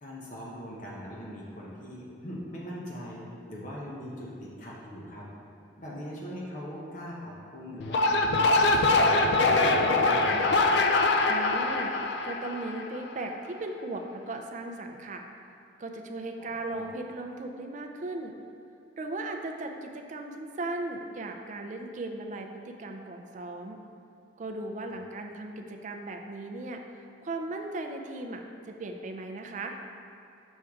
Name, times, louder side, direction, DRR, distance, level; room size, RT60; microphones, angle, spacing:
voice 1, 0.0-5.3 5.8-8.1 8.5-10.7 16.4-16.9 24.9-25.0, equal, 45° left, -5 dB, 0.8 m, -41 dB
sound 1, 7.8-13.1, left 2 dB, 65° left, 0.4 m, -23 dB
voice 2, 11.3-12.0 12.2-15.2 15.8-18.3 19.0-23.8 24.4-26.8 27.2-29.8, right 2 dB, 40° right, 4 dB, 0.4 m, -37 dB
6.3 x 4.4 x 3.5 m, 2.5 s
head